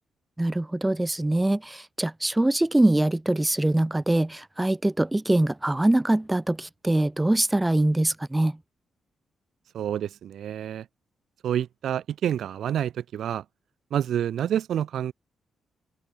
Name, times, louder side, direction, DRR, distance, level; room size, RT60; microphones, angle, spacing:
voice 1, 0.4-8.6, right 1 dB, 10° right, 4.4 m, -23 dB
voice 2, 9.7-10.9 11.4-13.4 13.9-15.1, right 10 dB, 65° right, 5.2 m, -28 dB
wide cardioid pair, 160°, 0 cm